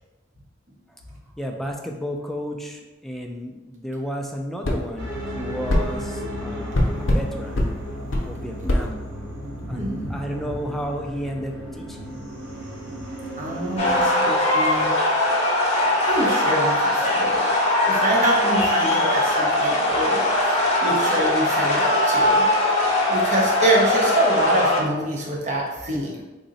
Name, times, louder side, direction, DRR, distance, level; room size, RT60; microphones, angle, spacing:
voice 1, 1.4-9.0 9.7-12.2, equal, ahead, 1 dB, 0.3 m, -33 dB
sound 1, 4.6-4.8 5.7-5.9 6.7-7.3 7.6-7.7 8.1-8.3 8.7-8.8, left 1 dB, 80° left, 0.6 m, -20 dB
sound 2, 5.0-14.0, equal, 65° right, 1.0 m, -34 dB
voice 2, 9.6-10.2 13.4-14.9 16.1-17.5 17.8-20.3 20.8-22.5 23.1-26.2, right 1 dB, 40° right, -3 dB, 0.8 m, -25 dB
sound 3, 13.8-24.8, left 1 dB, 35° left, 0.8 m, -20 dB
3.7 x 2.1 x 3.9 m, 1.1 s
head